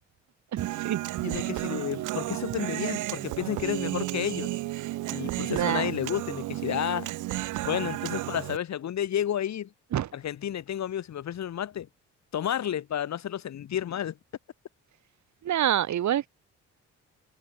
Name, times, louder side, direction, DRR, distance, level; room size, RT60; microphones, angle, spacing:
voice 1, 0.5-1.0 5.5-5.9 9.9-10.1 15.4-16.3, right 11 dB, 70° right, 4.1 m, -27 dB
Human voice, 0.6-8.6, right 16 dB, 90° right, 1.5 m, -32 dB
voice 2, 1.2-4.5 5.1-7.1 7.7-9.7 10.1-11.9 12.3-14.2, left 10 dB, 65° left, 3.5 m, -31 dB
cardioid pair, 90°, 30 cm